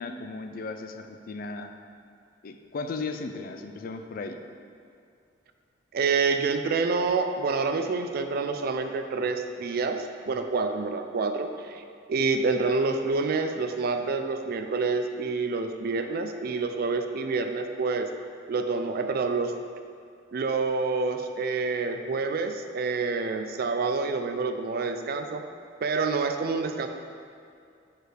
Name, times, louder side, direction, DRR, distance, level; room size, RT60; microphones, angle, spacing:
voice 1, 0.0-1.7 2.4-4.4, left 3 dB, 50° left, 6 dB, 0.4 m, -36 dB
voice 2, 5.9-11.8 12.1-18.1 18.5-19.5 20.3-25.4 25.8-26.9, right 4 dB, 55° right, 7 dB, 0.4 m, -27 dB
4.7 x 4.7 x 4.9 m, 2.3 s
head